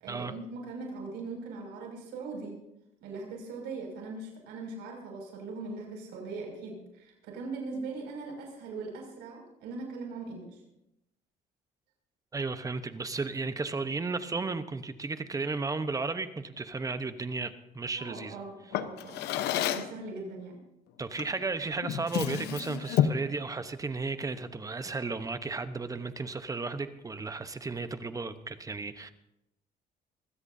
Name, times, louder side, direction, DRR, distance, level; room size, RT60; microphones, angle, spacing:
voice 1, 0.0-2.5 3.0-10.6 18.0-19.2 19.7-20.6, right 3 dB, 90° right, 1 dB, 6.1 m, -40 dB
voice 2, 12.3-18.4 21.0-29.1, right 3 dB, 20° right, 10 dB, 1.0 m, -34 dB
Drawer open or close, 18.7-20.0 21.2-21.4 21.8-23.3, left 10 dB, 85° left, 1.0 m, -29 dB
24.0 x 16.0 x 2.7 m, 0.86 s
cardioid pair, 110°, 17 cm